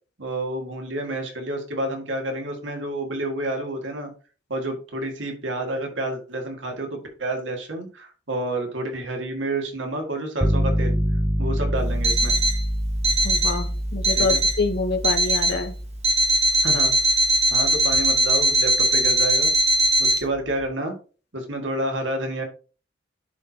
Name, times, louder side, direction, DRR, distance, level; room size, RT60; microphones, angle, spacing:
voice 1, 0.2-4.1 4.5-11.0 11.4-12.4 14.2-14.4 16.6-16.9 17.5-19.5 20.0-21.0 21.3-22.4, right 1 dB, 85° right, 3 dB, 1.9 m, -29 dB
sound 1, 10.4-20.3, equal, 10° right, 0.5 m, -27 dB
Alarm, 12.0-12.6 13.0-13.6 14.0-14.6 15.0-15.6 16.0-20.2, right 1 dB, 35° right, 1.5 m, -20 dB
voice 2, 13.2-15.7, left 3 dB, 60° left, 8 dB, 1.0 m, -26 dB
10.5 x 4.4 x 2.8 m, 0.36 s
head